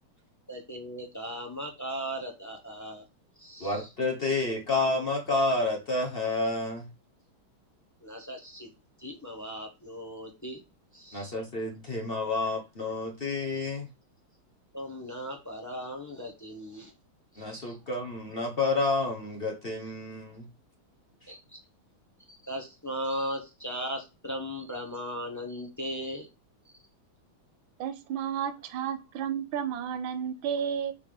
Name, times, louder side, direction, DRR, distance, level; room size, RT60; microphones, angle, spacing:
voice 1, 0.5-3.0 3.4-3.9 8.0-8.7 9.0-10.6 10.9-11.3 14.7-16.9 17.3-17.8 21.3-21.6 22.3-26.3, equal, 10° left, 2 dB, 0.8 m, -37 dB
voice 2, 3.6-6.9 11.1-13.9 17.4-20.5 21.2-21.3, left 3 dB, 40° left, 0 dB, 0.8 m, -30 dB
voice 3, 27.8-30.9, right 8 dB, 75° right, 9 dB, 1.5 m, -32 dB
6.7 x 3.6 x 5.0 m, 0.27 s
omnidirectional pair, 2.3 m